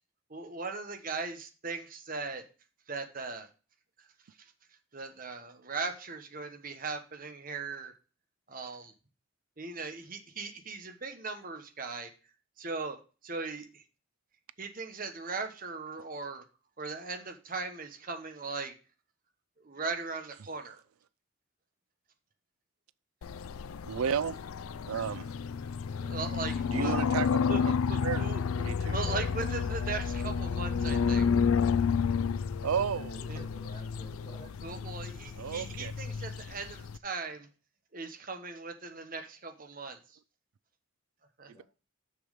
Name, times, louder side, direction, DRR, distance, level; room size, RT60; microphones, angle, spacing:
voice 1, 0.3-2.4 2.9-3.5 4.4-4.5 4.9-7.9 8.5-8.9 9.6-12.1 12.6-13.0 13.2-13.8 14.6-16.4 16.8-18.7 19.6-20.8 26.0-27.0 27.5-27.6 27.9-28.4 28.9-31.3 33.3-33.4 34.6-37.5 37.9-40.2 41.4-41.5, right 4 dB, 40° right, 1.2 m, -38 dB
sound 1, 23.2-37.0, left 6 dB, 85° left, 0.4 m, -31 dB
voice 2, 23.9-24.4 24.9-25.3 26.7-27.4 27.6-27.7 28.0-28.3 28.6-29.0 32.6-33.1 35.4-35.9, right 7 dB, 90° right, 0.4 m, -32 dB
voice 3, 32.8-34.6 41.5-41.6, equal, 25° left, 2.9 m, -49 dB
6.6 x 6.2 x 5.1 m
head